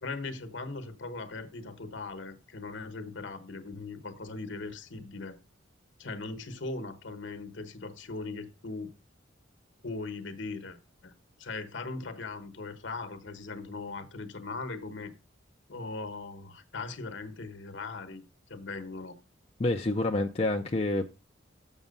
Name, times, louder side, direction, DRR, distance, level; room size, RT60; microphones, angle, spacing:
voice 1, 0.0-5.4 6.0-8.9 9.8-10.8 11.0-11.1 11.4-15.1 15.7-18.2 18.5-19.2, left 3 dB, 65° left, 1.1 m, -39 dB
voice 2, 19.6-21.0, left 2 dB, 30° left, 0.5 m, -28 dB
7.2 x 6.1 x 5.3 m
head